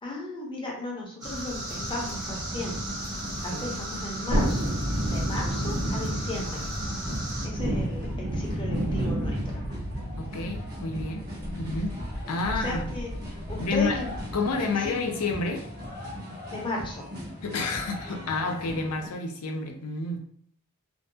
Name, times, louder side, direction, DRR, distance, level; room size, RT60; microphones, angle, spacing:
voice 1, 0.0-2.8 3.4-4.7 5.1-6.7 7.4-9.6 12.5-14.1 14.6-14.9 16.5-17.1, left 1 dB, 20° left, -2 dB, 0.7 m, -35 dB
sound 1, 1.2-7.5, right 1 dB, 15° right, 0.7 m, -36 dB
sound 2, 1.7-19.1, left 1 dB, 45° right, 0.9 m, -40 dB
voice 2, 3.3-3.8 10.2-11.2 11.5-12.0 12.3-12.8 13.6-14.0 14.3-15.6 17.4-20.2, left 3 dB, 75° left, 4 dB, 0.5 m, -30 dB
Thunderstorm, 4.3-14.5 14.9-15.0, equal, 80° right, 1.0 m, -31 dB
2.5 x 2.2 x 2.6 m, 0.63 s
head